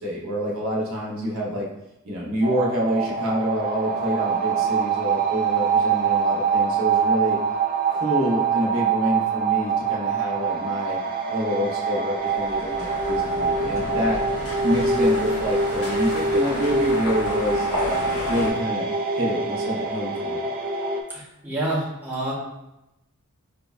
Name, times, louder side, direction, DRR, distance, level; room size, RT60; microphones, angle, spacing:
voice 1, 0.0-1.7 2.0-7.4 7.9-11.0 11.3-14.2 14.6-18.0 18.3-18.9 19.1-20.4, equal, 65° right, -3 dB, 0.8 m, -27 dB
sound 1, 2.4-21.0, right 4 dB, 45° right, 0.4 m, -24 dB
sound 2, 12.2-18.5, left 1 dB, 70° left, 0.8 m, -33 dB
voice 2, 21.1-22.3, right 1 dB, 10° right, -7 dB, 0.8 m, -28 dB
5.1 x 2.1 x 2.3 m, 0.90 s
head